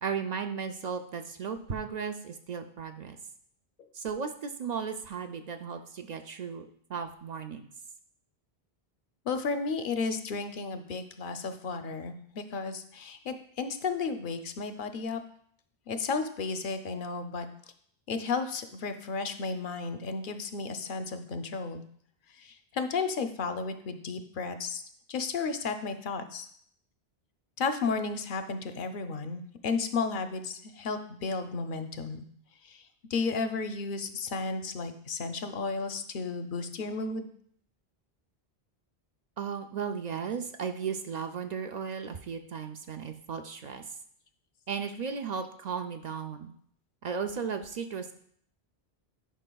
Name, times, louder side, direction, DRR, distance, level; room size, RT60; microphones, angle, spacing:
voice 1, 0.0-3.2 3.9-7.6 39.4-44.0 44.7-46.5 47.0-48.1, right 6 dB, 55° right, 7 dB, 0.5 m, -35 dB
voice 2, 9.3-15.2 15.9-17.5 18.1-21.8 22.4-24.8 25.1-26.5 27.6-32.2 32.6-32.8 33.1-37.3, left 4 dB, 60° left, 8 dB, 0.7 m, -33 dB
11.0 x 5.4 x 2.3 m, 0.63 s
omnidirectional pair, 1.0 m